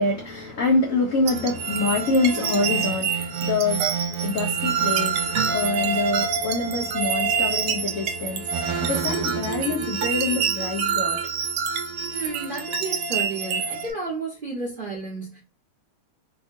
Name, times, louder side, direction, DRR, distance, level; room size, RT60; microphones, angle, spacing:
voice 1, 0.0-3.8 4.2-5.2 5.5-11.2, left 3 dB, 75° left, 0.7 m, -25 dB
sound 1, 1.3-13.9, right 6 dB, 75° right, 1.5 m, -26 dB
voice 2, 12.1-15.4, right 3 dB, 40° right, 0.7 m, -32 dB
3.7 x 2.7 x 2.5 m
omnidirectional pair, 2.4 m